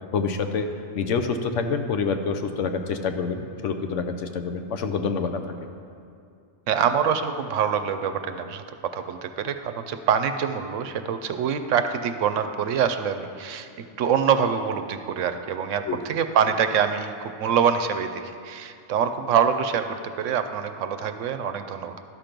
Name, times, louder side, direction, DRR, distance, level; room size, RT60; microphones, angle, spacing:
voice 1, 0.1-0.7 0.9-5.4 15.9-16.0, left 5 dB, 75° left, 7 dB, 1.0 m, -27 dB
voice 2, 6.7-8.6 8.9-13.7 14.0-19.9 20.2-22.0, right 7 dB, 75° right, 9 dB, 0.9 m, -25 dB
12.5 x 6.0 x 5.1 m, 2.4 s
omnidirectional pair, 1.3 m